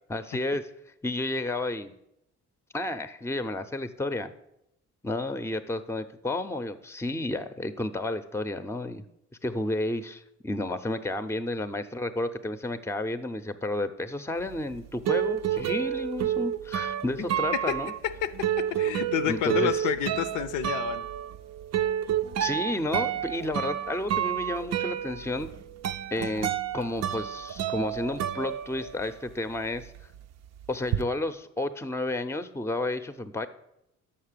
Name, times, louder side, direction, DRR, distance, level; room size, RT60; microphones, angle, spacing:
voice 1, 0.1-0.7 1.0-1.9 2.7-4.3 5.0-9.0 9.4-17.9 19.3-19.9 22.4-25.5 26.1-29.9 30.7-33.5, left 2 dB, 10° left, 11 dB, 0.6 m, -31 dB
sound 1, 14.5-29.3 29.6-31.0, right 10 dB, 55° right, 0.5 m, -30 dB
voice 2, 18.0-21.1, left 11 dB, 75° left, 11 dB, 0.6 m, -29 dB
6.7 x 5.5 x 6.6 m, 0.79 s
supercardioid pair, 65°, 31 cm